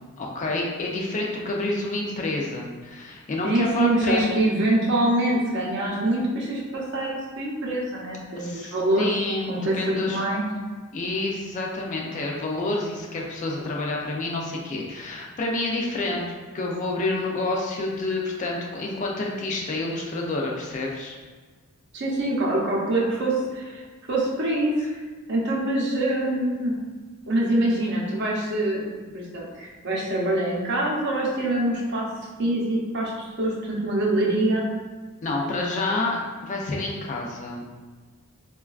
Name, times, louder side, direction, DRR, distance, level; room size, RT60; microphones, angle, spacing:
voice 1, 0.2-4.4 8.4-9.5 9.7-10.2 10.9-16.2 16.5-21.1 24.8-24.9 35.2-37.6, left 2 dB, 35° left, -1 dB, 0.4 m, -28 dB
voice 2, 3.4-9.1 9.5-10.4 21.9-24.7 25.3-26.7 27.3-28.8 29.1-32.1 32.4-34.7, right 1 dB, 50° right, -3 dB, 0.6 m, -25 dB
3.8 x 2.2 x 2.3 m, 1.4 s
head